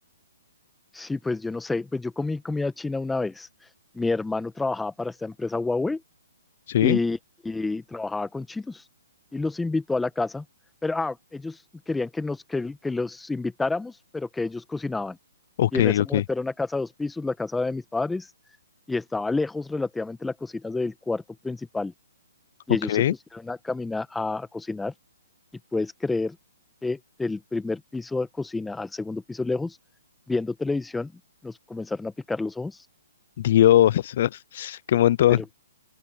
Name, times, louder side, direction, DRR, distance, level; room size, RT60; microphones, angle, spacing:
voice 1, 0.9-3.5 3.9-6.0 6.8-7.2 7.4-8.8 9.3-10.4 10.8-11.6 11.9-15.2 15.7-18.3 18.9-21.9 22.7-23.0 23.3-24.9 25.7-26.4 26.8-29.8 30.3-31.1 31.4-32.8 35.3-35.4, left 3 dB, 5° left, 1.4 m, -29 dB
voice 2, 6.7-7.0 15.6-16.2 22.9-23.1 33.4-35.4, left 12 dB, 50° left, 0.5 m, -20 dB
open air
hypercardioid pair, 145°, 0 cm